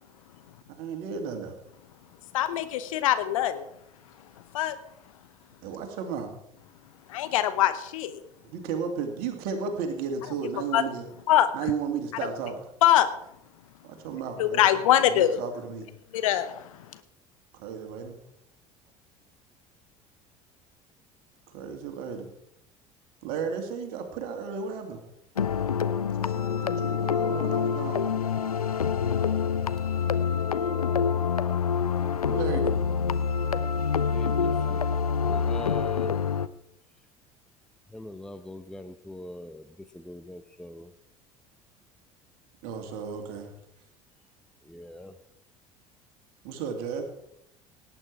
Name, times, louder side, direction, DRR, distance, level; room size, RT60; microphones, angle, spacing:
voice 1, 0.7-1.6 5.6-6.3 8.5-11.1 11.5-12.7 13.8-14.7 15.1-15.9 17.5-18.2 21.5-22.3 23.2-25.0 26.2-28.1 32.3-32.8 42.6-43.5 46.4-47.0, right 6 dB, 55° right, 4 dB, 2.5 m, -34 dB
voice 2, 2.3-3.7 4.5-4.8 7.1-8.2 10.7-10.8 11.3-11.5 12.8-13.1 14.4-15.4 16.1-16.7, left 12 dB, 65° left, 12 dB, 0.9 m, -23 dB
sound 1, 25.4-36.5, left 6 dB, 85° left, 0.5 m, -26 dB
voice 3, 34.1-34.8 35.2-36.1 37.9-39.6 39.9-40.9 44.7-45.1, left 1 dB, 5° left, 10 dB, 0.8 m, -41 dB
17.5 x 9.1 x 4.7 m, 0.77 s
figure-of-eight pair, 65°, 19 cm